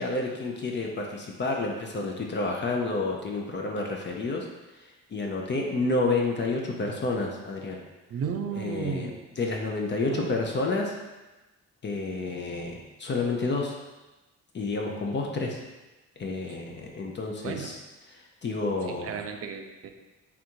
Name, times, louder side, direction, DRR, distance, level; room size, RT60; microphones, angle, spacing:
voice 1, 0.0-4.5 5.1-7.8 8.5-9.1 9.4-10.9 11.8-13.8 14.5-15.6 16.2-17.8 18.1-19.1, left 3 dB, 40° left, 0 dB, 0.6 m, -29 dB
voice 2, 8.1-9.2 10.0-10.4 17.4-17.8 18.9-19.9, right 6 dB, 50° right, 5 dB, 0.5 m, -34 dB
3.6 x 2.6 x 4.5 m, 1.1 s
cardioid pair, 90°, 30 cm